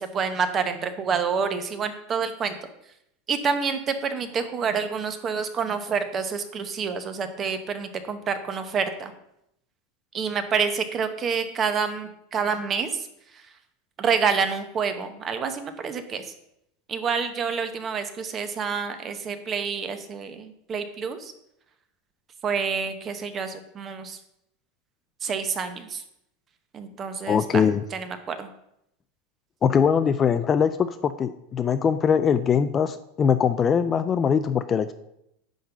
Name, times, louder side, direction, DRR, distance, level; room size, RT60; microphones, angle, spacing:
voice 1, 0.0-2.6 3.3-9.1 10.1-13.0 14.0-16.2 16.9-21.3 22.4-24.2 25.2-26.0 26.7-27.6 27.9-28.5, right 6 dB, 25° right, 9 dB, 0.9 m, -28 dB
voice 2, 27.3-27.8 29.6-34.9, left 7 dB, 20° left, 11 dB, 0.3 m, -22 dB
10.0 x 3.9 x 6.7 m, 0.80 s
supercardioid pair, 160°, 0 cm